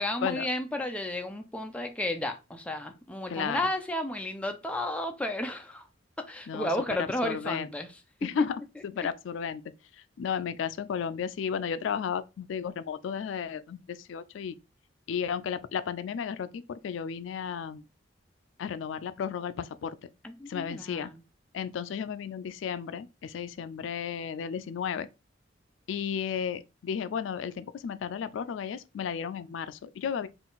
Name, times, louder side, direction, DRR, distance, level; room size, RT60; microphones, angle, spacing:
voice 1, 0.0-5.9 6.2-8.0 20.2-21.2, left 1 dB, 5° left, 0.4 m, -33 dB
voice 2, 7.0-7.7 8.2-8.6 8.9-9.6 10.2-14.6 15.1-17.8 18.6-20.0 20.5-21.1 21.5-25.1 25.9-30.3, left 7 dB, 80° left, 0.3 m, -33 dB
3.8 x 2.4 x 3.8 m
head